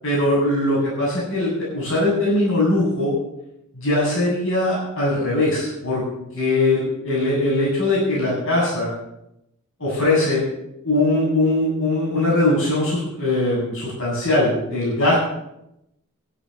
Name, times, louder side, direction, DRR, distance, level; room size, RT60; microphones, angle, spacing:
voice 1, 0.0-3.1 3.7-6.0 6.3-8.9 9.8-10.4 10.8-15.2, left 2 dB, 65° left, -5 dB, 7.9 m, -21 dB
12.5 x 11.5 x 7.2 m, 0.84 s
head